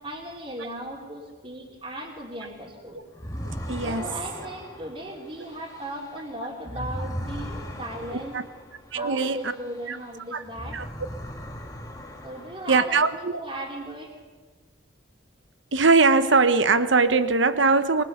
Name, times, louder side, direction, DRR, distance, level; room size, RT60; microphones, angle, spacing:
voice 1, 0.0-3.0 3.8-8.4 8.9-10.8 12.2-14.1, right 1 dB, 25° right, -2 dB, 3.0 m, -37 dB
sound 1, 3.1-10.1 10.4-13.1, equal, 15° left, 2.1 m, -38 dB
voice 2, 3.7-4.1 8.1-8.4 8.9-9.5 9.9-10.0 10.3-10.4 10.7-10.8 12.7-13.4 15.7-18.0, right 4 dB, 70° right, 12 dB, 1.1 m, -21 dB
23.0 x 22.0 x 6.7 m, 1.4 s
head